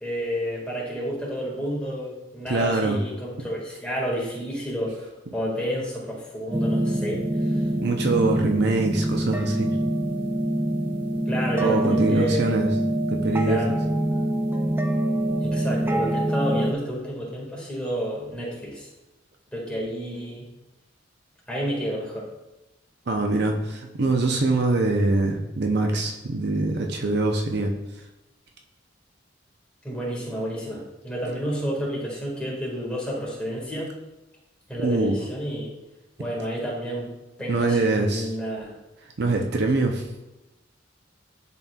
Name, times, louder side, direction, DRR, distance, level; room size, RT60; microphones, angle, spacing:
voice 1, 0.0-7.6 11.3-12.5 13.4-13.7 15.4-18.9 19.5-20.5 21.5-22.3 29.8-33.9 34.7-35.7 36.2-37.1 37.4-38.7, equal, 5° left, -4 dB, 1.8 m, -30 dB
voice 2, 2.5-3.0 7.8-9.7 11.6-12.7 13.1-13.8 23.1-27.7 34.8-35.2 37.5-38.3 39.2-40.0, right 2 dB, 60° right, 3 dB, 0.6 m, -23 dB
sound 1, 6.5-16.7, right 1 dB, 10° right, 0.3 m, -25 dB
10.5 x 4.2 x 2.3 m, 0.99 s
head